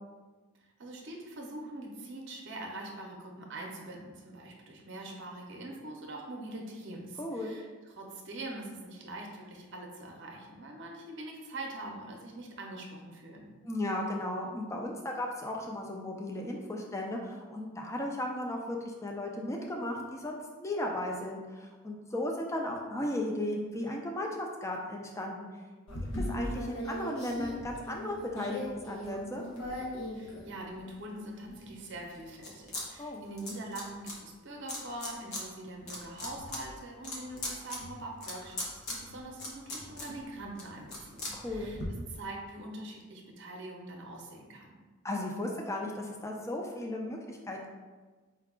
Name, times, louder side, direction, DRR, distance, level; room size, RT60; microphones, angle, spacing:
voice 1, 0.6-13.5 30.1-41.8 42.1-44.7, right 2 dB, 55° right, 1 dB, 0.7 m, -43 dB
voice 2, 7.2-7.5 13.6-25.5 26.3-29.4 33.0-33.2 41.3-41.8 45.0-47.7, left 1 dB, 15° left, 0 dB, 0.4 m, -35 dB
sound 1, 25.9-30.9 31.5-32.8 33.1-34.1 34.7-35.4 35.8-41.9, left 1 dB, 85° left, 0.9 m, -39 dB
4.5 x 2.3 x 3.6 m, 1.3 s
head